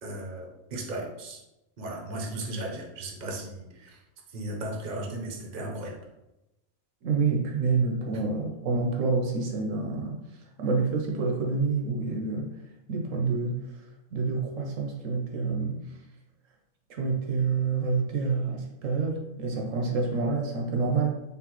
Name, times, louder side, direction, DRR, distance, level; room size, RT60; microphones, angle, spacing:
voice 1, 0.0-1.4 1.8-4.0 4.3-5.9, right 1 dB, 45° right, 0 dB, 0.8 m, -36 dB
voice 2, 7.0-10.2 10.6-12.5 12.9-13.8 14.1-15.8 16.9-21.1, right 4 dB, 70° right, 1 dB, 1.0 m, -27 dB
4.0 x 3.5 x 3.0 m, 0.95 s
omnidirectional pair, 1.4 m